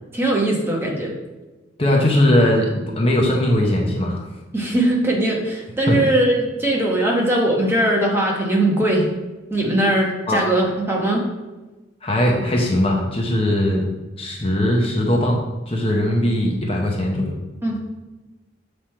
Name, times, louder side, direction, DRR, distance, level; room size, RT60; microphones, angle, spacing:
voice 1, 0.1-1.1 4.5-9.1 9.5-11.2 17.6-18.0, right 1 dB, 10° right, -2 dB, 1.0 m, -20 dB
voice 2, 1.8-4.3 5.9-6.0 10.3-10.4 12.0-13.9 14.2-15.4 15.7-17.3, left 1 dB, 30° left, -1 dB, 0.8 m, -19 dB
7.4 x 3.4 x 4.4 m, 1.1 s
head